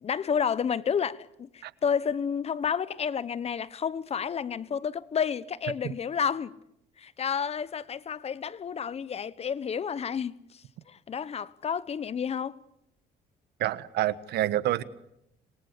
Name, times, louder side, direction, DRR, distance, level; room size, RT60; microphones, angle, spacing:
voice 1, 0.0-6.5 7.0-12.6, left 7 dB, 40° left, 1.1 m, -30 dB
voice 2, 13.6-14.8, right 14 dB, 75° right, 1.4 m, -27 dB
27.0 x 22.5 x 8.4 m
cardioid pair, 110°, 17 cm